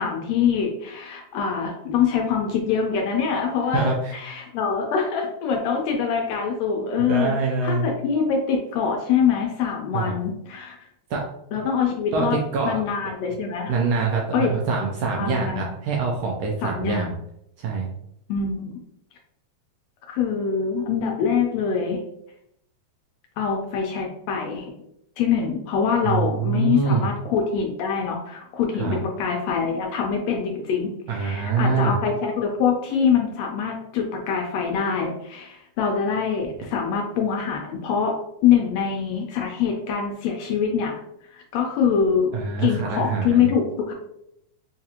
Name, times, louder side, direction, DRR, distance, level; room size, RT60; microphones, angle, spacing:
voice 1, 0.0-7.3 7.6-10.7 11.5-12.4 12.6-13.7 14.3-14.5 15.2-15.7 16.6-17.1 18.3-18.7 20.1-22.0 23.4-24.7 25.2-38.2 38.4-40.9 41.3-42.3 42.6-43.9, left 6 dB, 75° left, 1 dB, 1.6 m, -24 dB
voice 2, 3.7-4.1 7.0-7.9 9.9-10.1 11.1-11.2 12.1-12.8 13.7-17.2 17.6-17.9 26.0-27.1 28.8-29.0 31.1-32.0 42.3-43.5, right 4 dB, 80° right, -2 dB, 1.5 m, -24 dB
4.6 x 2.5 x 2.8 m, 0.78 s
omnidirectional pair, 3.4 m